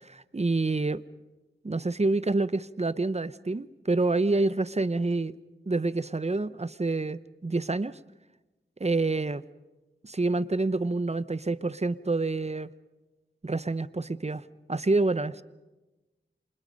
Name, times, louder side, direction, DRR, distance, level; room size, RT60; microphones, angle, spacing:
voice 1, 0.1-1.0 1.6-5.3 5.7-8.0 8.8-9.4 10.0-12.7 13.4-14.4 14.7-15.4, right 3 dB, 35° right, 15 dB, 0.8 m, -27 dB
28.5 x 27.5 x 5.3 m, 1.1 s
wide cardioid pair, 55°, 19 cm